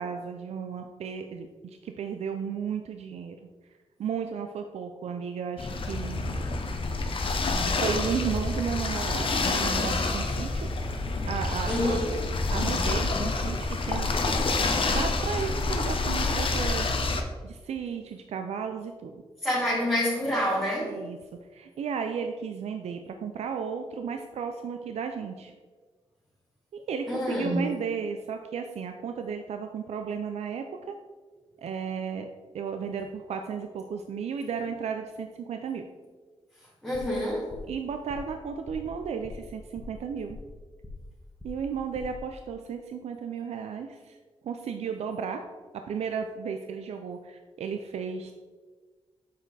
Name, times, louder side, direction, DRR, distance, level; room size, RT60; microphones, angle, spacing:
voice 1, 0.0-3.4 4.0-6.4 7.8-10.7 11.3-12.0 12.5-14.1 14.6-16.9 17.4-19.2 20.9-21.2 21.5-25.5 26.7-31.0 31.6-32.3 32.5-35.8 37.7-40.4 41.4-44.2 44.4-45.4 45.7-48.3, right 6 dB, 85° right, 6 dB, 0.4 m, -34 dB
sound 1, 5.6-17.2, left 3 dB, 55° left, 0.8 m, -28 dB
voice 2, 11.7-12.1 19.4-20.9 27.1-27.6 36.8-37.5, left 1 dB, 5° left, -8 dB, 2.1 m, -27 dB
sound 2, 36.9-37.2 37.5-37.8 38.1-38.4 38.7-38.9 39.2-39.5 39.8-40.6 40.8-41.1 41.4-41.7 41.9-42.2, left 2 dB, 25° left, 1.2 m, -44 dB
6.7 x 4.6 x 3.9 m, 1.4 s
cardioid pair, 70°, 11 cm